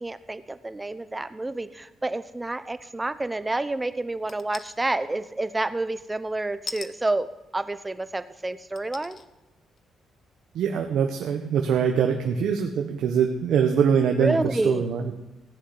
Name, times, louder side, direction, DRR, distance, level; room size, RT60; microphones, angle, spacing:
voice 1, 0.0-7.3 7.5-9.2 14.2-14.9, right 2 dB, 15° right, 13 dB, 0.9 m, -29 dB
sound 1, 4.3-4.8 6.7-6.9 7.8-7.9 8.8-9.3 9.8-9.9, left 5 dB, 50° left, 1.1 m, -38 dB
voice 2, 10.5-15.1, right 7 dB, 75° right, 3 dB, 1.4 m, -23 dB
16.0 x 6.7 x 9.6 m, 1.0 s
cardioid pair, 90°, 0 cm